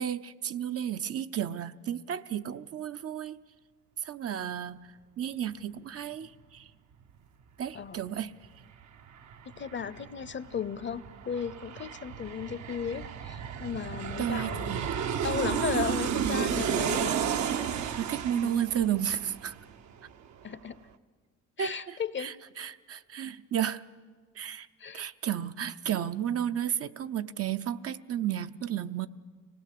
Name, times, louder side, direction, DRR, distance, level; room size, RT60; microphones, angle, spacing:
voice 1, 0.0-3.4 4.0-4.9 5.2-6.7 7.6-8.3 14.2-15.0 18.0-19.5 21.6-23.8 24.4-24.7 24.9-29.1, right 10 dB, 50° right, 10 dB, 0.7 m, -33 dB
Aircraft, 8.4-8.5 8.8-20.1 20.4-20.5, right 8 dB, 70° right, 1.0 m, -32 dB
voice 2, 9.5-14.8 15.2-17.1 18.3-18.6 20.4-20.8 21.6-22.3 24.8-25.0, left 7 dB, 40° left, 16 dB, 0.8 m, -35 dB
24.5 x 18.0 x 8.5 m, 1.5 s
cardioid pair, 90°, 30 cm